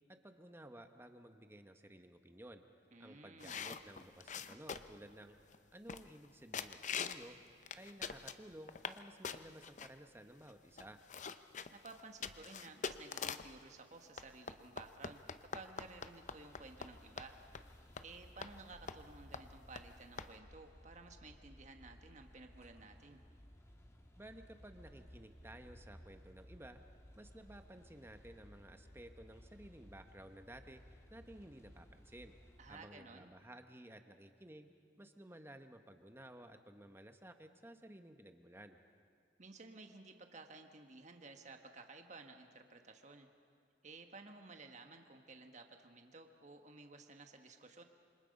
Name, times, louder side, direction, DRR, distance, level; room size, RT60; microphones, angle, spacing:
voice 1, 0.1-2.6 3.0-5.3 5.7-7.4 7.8-11.0 24.2-26.8 27.2-32.3 32.7-34.7 35.0-38.8, right 1 dB, 15° right, 7 dB, 1.1 m, -55 dB
voice 2, 2.9-3.6 11.7-17.3 18.0-23.2 32.6-33.3 39.4-43.3 43.8-47.8, right 3 dB, 40° right, 5 dB, 1.4 m, -55 dB
sound 1, 3.4-5.0 5.5-5.6 5.9-6.3 6.5-7.3 7.6-9.0 9.2-9.9 10.5-10.6 10.8-13.6 14.2-16.9 17.2-17.3 17.5-17.7 18.0-18.1 18.4-18.5 18.9-19.1 19.3-19.4 19.7-19.8 20.2-20.3, left 6 dB, 40° left, 0.7 m, -44 dB
sound 2, 15.2-32.8, equal, 15° left, 1.7 m, -60 dB
27.0 x 25.5 x 5.4 m, 2.3 s
head